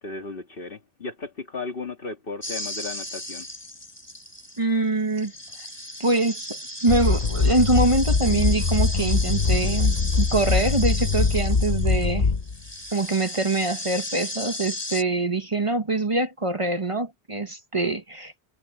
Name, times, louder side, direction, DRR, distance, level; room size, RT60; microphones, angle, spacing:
voice 1, 0.0-3.5, left 3 dB, 65° left, 2.1 m, -35 dB
sound 1, 2.4-4.6 5.1-12.1 12.4-15.0, left 1 dB, 25° left, 5.3 m, -35 dB
voice 2, 4.6-5.3 6.0-6.6 6.8-12.3 12.9-18.4, right 2 dB, 30° right, 1.2 m, -24 dB
sound 2, 6.9-12.7, left 4 dB, 45° left, 1.0 m, -22 dB
omnidirectional pair, 1.0 m